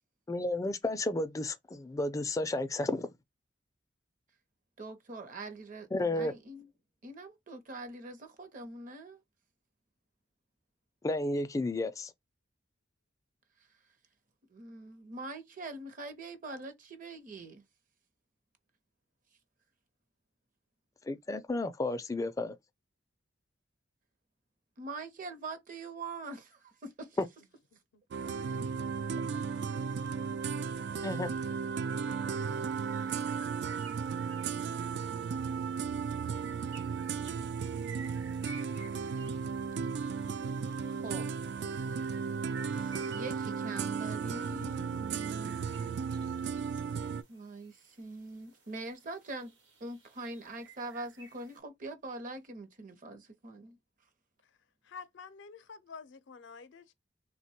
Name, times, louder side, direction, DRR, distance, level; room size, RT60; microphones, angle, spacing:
voice 1, 0.3-3.1 5.9-6.3 11.0-12.1 21.1-22.5 27.2-27.3 31.0-31.3, left 2 dB, 20° left, 0.3 m, -32 dB
voice 2, 4.8-6.7 7.0-9.2 14.5-17.6 24.8-27.2 40.9-41.3 42.7-45.6 46.4-46.5 47.3-49.5 49.8-53.8, right 2 dB, 45° right, 0.7 m, -43 dB
sound 1, 28.1-47.2, right 6 dB, 65° right, 0.3 m, -35 dB
sound 2, 32.5-51.6, right 5 dB, 80° right, 1.0 m, -55 dB
voice 3, 54.8-56.9, left 5 dB, 85° left, 0.5 m, -48 dB
3.3 x 2.2 x 2.7 m
head